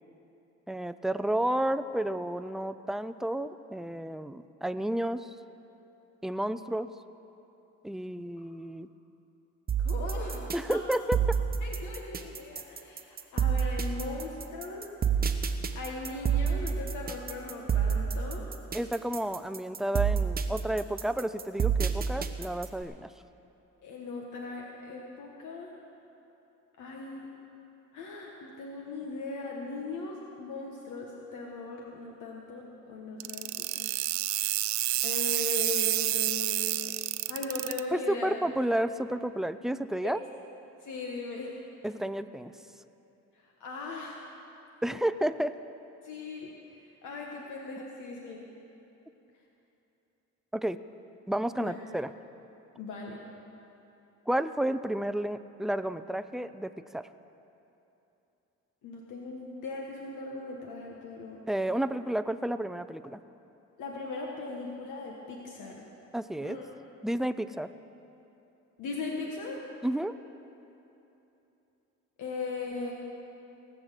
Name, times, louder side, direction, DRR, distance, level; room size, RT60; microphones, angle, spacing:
voice 1, 0.7-5.3 6.2-6.9 7.8-8.9 10.5-11.4 18.7-23.1 37.9-40.2 41.8-42.5 44.8-45.5 50.5-50.8 51.3-52.1 54.3-57.1 61.5-63.2 66.1-66.6 67.0-67.7 69.8-70.2, right 1 dB, ahead, 12 dB, 0.4 m, -31 dB
sound 1, 9.7-22.8, right 7 dB, 30° right, 0.9 m, -28 dB
voice 2, 9.8-10.8 11.6-14.9 15.7-18.4 23.8-25.7 26.8-27.3 27.9-33.9 35.0-36.9 37.3-38.4 40.0-40.1 40.8-41.5 43.6-44.2 46.0-46.5 47.0-48.5 51.6-51.7 52.8-53.2 58.8-61.4 63.8-65.9 66.4-66.6 68.8-69.6 72.2-72.9, left 3 dB, 80° left, -1 dB, 1.4 m, -39 dB
sound 2, 33.2-37.8, right 15 dB, 70° right, 0.5 m, -29 dB
18.0 x 6.2 x 8.2 m, 3.0 s
cardioid pair, 90°, 30 cm